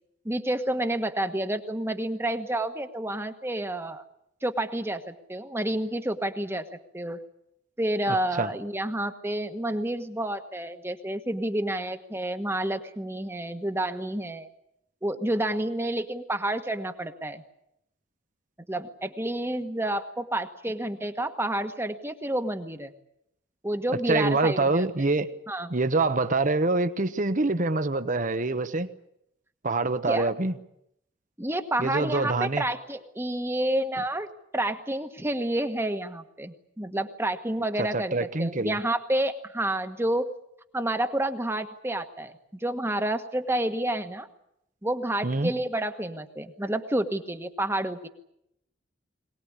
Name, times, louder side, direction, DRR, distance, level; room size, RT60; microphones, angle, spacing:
voice 1, 0.2-4.0 4.4-6.7 6.9-7.2 7.8-14.5 15.0-17.4 18.7-22.9 23.6-24.8 25.5-25.7 30.1-30.3 31.4-40.3 40.7-44.3 44.8-48.1, right 1 dB, 15° right, 8 dB, 1.4 m, -29 dB
voice 2, 8.1-8.5 24.1-25.3 25.7-28.9 29.6-30.5 31.8-32.6 37.8-38.8 45.2-45.5, right 3 dB, 45° right, 10 dB, 1.1 m, -25 dB
22.5 x 19.0 x 9.7 m, 0.78 s
head